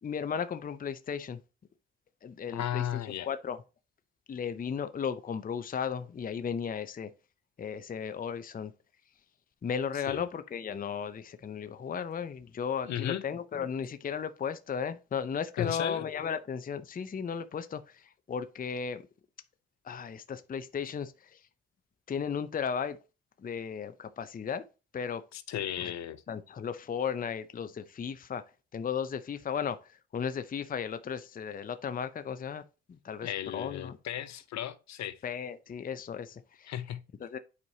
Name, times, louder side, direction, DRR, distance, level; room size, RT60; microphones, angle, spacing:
voice 1, 0.0-1.4 2.2-2.8 3.3-3.6 4.3-7.1 7.6-8.7 9.6-19.0 19.8-21.4 22.1-23.0 23.4-24.6 24.9-25.2 25.8-25.9 26.3-28.4 28.7-32.6 32.9-34.0 35.2-36.7 37.2-37.4, left 7 dB, 30° left, 0.6 m, -35 dB
voice 2, 2.5-3.3 10.1-10.2 12.8-13.2 15.6-16.0 25.3-26.2 33.2-35.2 36.7-37.0, left 11 dB, 65° left, 0.7 m, -35 dB
8.4 x 4.7 x 2.8 m
cardioid pair, 90°, 30 cm